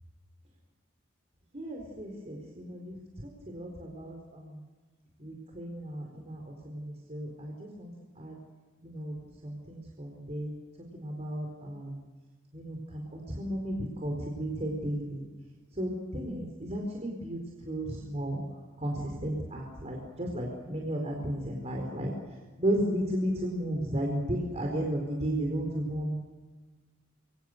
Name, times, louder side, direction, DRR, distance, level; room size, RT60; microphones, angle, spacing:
voice 1, 1.5-4.6 5.2-8.4 8.8-9.2 9.4-10.5 10.9-12.0 12.5-15.2 15.7-17.4 17.6-18.4 18.8-22.1 22.6-26.2, right 1 dB, 35° right, 0 dB, 4.4 m, -34 dB
27.5 x 24.0 x 6.6 m, 1.4 s
head